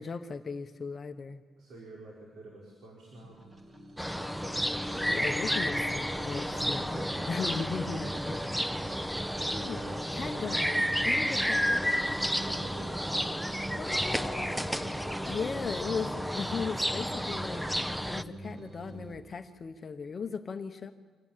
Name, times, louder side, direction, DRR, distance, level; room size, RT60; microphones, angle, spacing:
voice 1, 0.0-1.4 5.0-7.0 7.3-8.1 9.5-9.8 10.1-12.0 13.8-14.5 15.3-20.9, left 5 dB, 35° left, 8 dB, 0.9 m, -37 dB
voice 2, 1.6-3.5 6.5-8.5 9.3-10.5 12.3-13.0 13.8-15.1, right 1 dB, 80° right, -3 dB, 4.6 m, -49 dB
sound 1, 3.2-19.2, equal, 25° right, 1.7 m, -44 dB
sound 2, 4.0-18.2, equal, ahead, 0.5 m, -31 dB
26.0 x 17.5 x 7.3 m, 1.4 s
wide cardioid pair, 155°, 0 cm